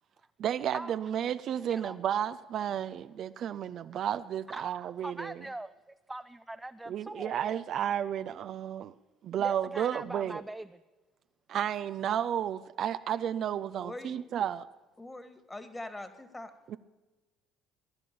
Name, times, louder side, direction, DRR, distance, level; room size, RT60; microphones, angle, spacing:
voice 1, 0.4-5.4 6.9-8.9 9.2-10.4 11.5-14.7 16.7-16.8, right 10 dB, 55° right, 0.6 m, -32 dB
voice 2, 4.5-5.7 6.1-7.5 9.4-10.8, right 2 dB, 10° right, 0.5 m, -41 dB
voice 3, 13.8-14.2 15.0-16.5, left 2 dB, 15° left, 2.1 m, -43 dB
19.0 x 11.0 x 6.9 m
hypercardioid pair, 60°, 0 cm